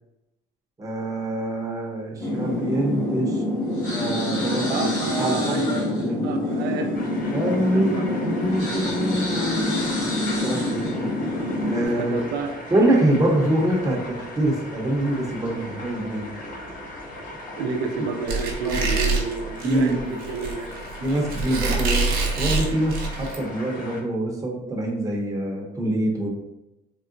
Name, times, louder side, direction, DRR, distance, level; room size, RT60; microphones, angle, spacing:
voice 1, 0.8-3.4 3.9-4.9 5.2-6.2 7.3-9.7 10.4-11.1 11.7-12.2 12.7-16.3 18.6-18.9 19.6-20.2 21.0-26.3, right 1 dB, 20° right, -1 dB, 0.7 m, -25 dB
sound 1, 2.2-11.9, left 1 dB, 85° left, 1.4 m, -26 dB
voice 2, 4.7-6.9 7.2-7.4 7.7-8.0 11.8-12.6 17.6-20.7, right 4 dB, 80° right, 4 dB, 0.5 m, -30 dB
sound 2, 6.9-24.0, left 1 dB, 50° left, 0.8 m, -38 dB
Squeak, 18.3-23.4, right 3 dB, 65° right, 0.8 m, -25 dB
3.6 x 2.1 x 2.5 m, 0.93 s
cardioid pair, 110°, 17 cm